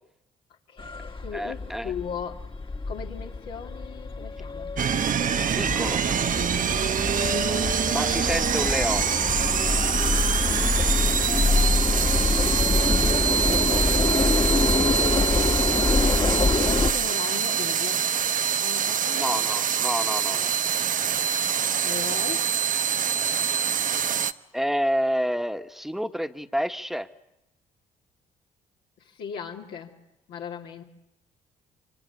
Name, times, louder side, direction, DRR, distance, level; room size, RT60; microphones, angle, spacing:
voice 1, 0.7-2.5 2.9-4.7 16.1-18.1 18.6-19.4 19.9-20.1 21.6-22.5 29.0-29.9 30.3-30.8, left 7 dB, 70° left, -1 dB, 3.0 m, -38 dB
sound 1, 0.8-16.9, left 3 dB, 30° left, 2.1 m, -25 dB
voice 2, 1.3-1.9 5.6-6.0 7.9-9.1 19.2-20.5 24.5-27.1, equal, ahead, 9 dB, 1.8 m, -28 dB
sound 2, 4.8-24.3, right 8 dB, 50° right, 1.1 m, -25 dB
26.0 x 25.5 x 8.3 m, 0.86 s
hypercardioid pair, 50°, 18 cm